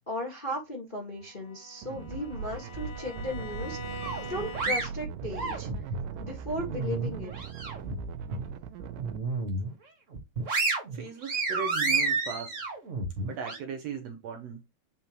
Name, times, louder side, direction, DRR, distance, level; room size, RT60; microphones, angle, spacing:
voice 1, 0.1-5.7 6.2-7.3, left 1 dB, 25° left, 1.2 m, -36 dB
Bowed string instrument, 1.1-5.0, left 1 dB, 60° left, 1.7 m, -44 dB
sound 1, 1.8-9.2, right 6 dB, 85° right, 2.3 m, -39 dB
sound 2, 4.0-6.0 6.5-7.9 8.3-8.5 8.9-9.7 10.1-13.6, right 3 dB, 35° right, 1.3 m, -31 dB
voice 2, 10.9-12.6 13.2-14.6, right 6 dB, 70° right, 1.7 m, -37 dB
8.0 x 4.1 x 3.1 m
omnidirectional pair, 3.7 m